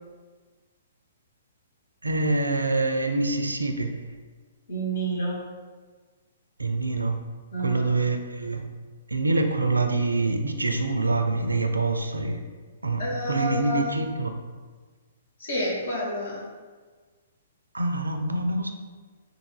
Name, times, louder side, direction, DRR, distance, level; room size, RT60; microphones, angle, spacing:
voice 1, 2.0-3.9 6.6-7.2 7.6-8.6 9.1-12.4 12.8-14.3 17.7-18.7, right 2 dB, 75° right, 6 dB, 0.4 m, -25 dB
voice 2, 4.7-5.4 7.5-7.8 13.0-14.0 15.4-16.4, right 1 dB, 55° left, -3 dB, 1.2 m, -29 dB
3.7 x 2.5 x 4.6 m, 1.4 s
figure-of-eight pair, 120°, 0 cm